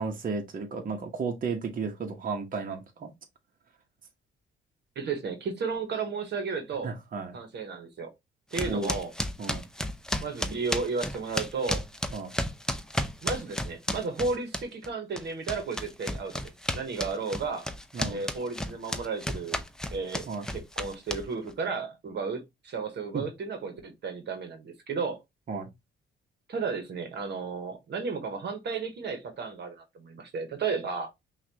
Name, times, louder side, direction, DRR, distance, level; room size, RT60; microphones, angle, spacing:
voice 1, 0.0-3.1 6.8-7.4 8.7-8.9 9.4-9.6 12.1-12.3 17.9-18.2 20.3-20.5 23.1-23.2 25.5-25.7, right 4 dB, 45° right, 1.2 m, -33 dB
voice 2, 4.9-6.9 7.3-8.1 8.5-9.1 10.2-11.9 13.2-17.7 18.1-19.6 19.9-25.2 26.5-31.1, right 4 dB, 60° right, 1.2 m, -33 dB
sound 1, 8.5-14.9 15.2-21.5, left 1 dB, 5° left, 0.6 m, -32 dB
5.8 x 2.5 x 2.9 m
cardioid pair, 90°, 20 cm